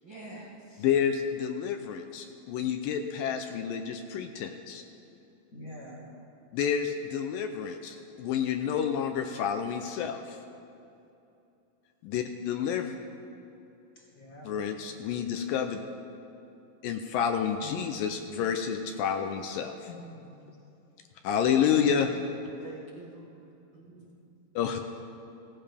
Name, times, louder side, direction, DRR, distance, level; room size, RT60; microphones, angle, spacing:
voice 1, 0.0-0.9 22.6-23.5 23.7-24.2, right 2 dB, 60° right, -6 dB, 1.3 m, -46 dB
voice 2, 0.8-4.8 6.5-10.4 12.0-13.0 14.5-15.8 16.8-19.9 21.2-22.1 24.6-24.8, left 8 dB, 80° left, 6 dB, 2.1 m, -29 dB
voice 3, 5.5-6.0 14.0-14.5 19.8-20.2 21.7-22.0, left 1 dB, 35° left, -3 dB, 1.4 m, -45 dB
16.5 x 16.0 x 3.4 m, 2.7 s
omnidirectional pair, 4.3 m